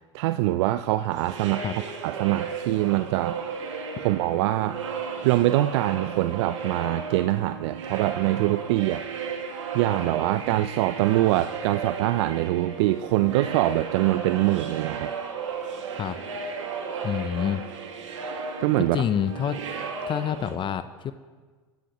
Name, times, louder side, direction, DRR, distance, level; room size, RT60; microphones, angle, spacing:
voice 1, 0.1-1.6 2.0-3.4 4.0-4.8 5.2-9.0 9.7-15.1 18.6-19.0, right 16 dB, 65° right, 12 dB, 0.5 m, -24 dB
sound 1, 1.1-20.5, right 5 dB, 80° right, 2.1 m, -34 dB
voice 2, 17.0-17.6 18.8-19.6 20.1-21.1, left 9 dB, 30° left, 12 dB, 0.7 m, -27 dB
26.5 x 13.0 x 3.1 m, 1.4 s
hypercardioid pair, 95°, 16 cm